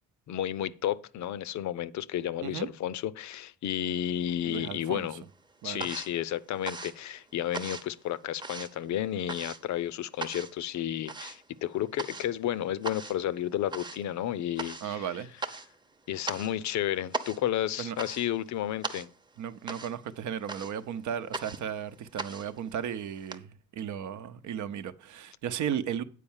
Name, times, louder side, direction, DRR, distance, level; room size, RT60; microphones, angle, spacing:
voice 1, 0.3-5.2 5.6-15.1 16.1-19.1, left 11 dB, 65° left, 0.6 m, -32 dB
sound 1, 4.0-4.8 5.1-23.4, right 3 dB, 15° right, 0.8 m, -40 dB
voice 2, 4.4-5.1 5.6-5.9 14.8-15.3 17.8-18.0 19.4-26.0, right 8 dB, 75° right, 0.8 m, -35 dB
8.4 x 4.7 x 7.1 m
cardioid pair, 90°, 30 cm